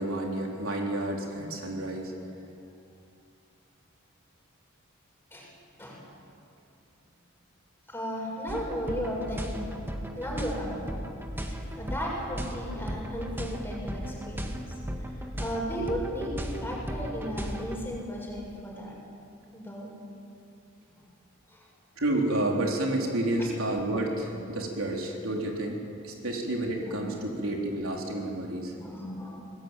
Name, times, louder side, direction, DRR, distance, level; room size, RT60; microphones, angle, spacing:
voice 1, 0.0-2.1 12.6-12.7 22.0-28.8, right 1 dB, 80° right, 0 dB, 3.8 m, -30 dB
voice 2, 7.9-9.8 10.1-10.9 11.5-14.5 15.0-15.1 15.4-19.0 19.5-19.9 20.9-21.0 21.5-21.6 24.2-24.3 26.9-27.4 28.8-29.5, equal, 10° left, -3 dB, 6.7 m, -35 dB
sound 1, 8.5-17.8, equal, 10° right, 1.9 m, -36 dB
24.0 x 19.5 x 9.2 m, 2.6 s
head